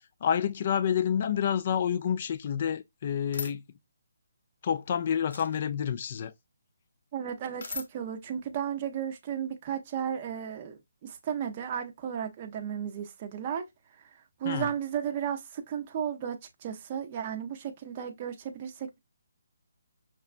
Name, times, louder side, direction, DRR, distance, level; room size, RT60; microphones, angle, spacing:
voice 1, 0.2-3.6 4.6-6.3 14.4-14.7, left 8 dB, 40° left, 0.3 m, -28 dB
sound 1, 3.3-3.5 5.3-5.6 7.6-7.9, left 5 dB, 70° left, 0.8 m, -37 dB
voice 2, 7.1-13.7 14.4-19.0, right 8 dB, 30° right, 0.5 m, -34 dB
5.8 x 2.1 x 2.4 m
hypercardioid pair, 165°, 0 cm